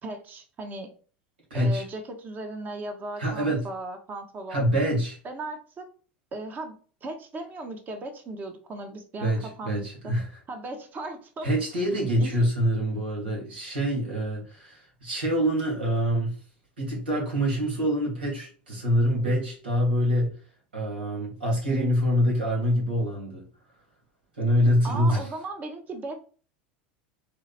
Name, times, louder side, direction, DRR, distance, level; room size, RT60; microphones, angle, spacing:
voice 1, 0.0-0.9 1.5-4.7 5.2-5.9 6.3-10.1 10.5-11.5 12.2-12.3 24.8-26.2, right 2 dB, 35° right, 6 dB, 1.3 m, -37 dB
voice 2, 1.5-1.8 3.2-3.6 4.5-5.2 9.2-10.3 11.4-16.4 16.8-20.4 20.7-23.4 24.4-25.3, equal, 90° right, -2 dB, 2.6 m, -25 dB
4.1 x 3.0 x 4.2 m, 0.40 s
hypercardioid pair, 90°, 5 cm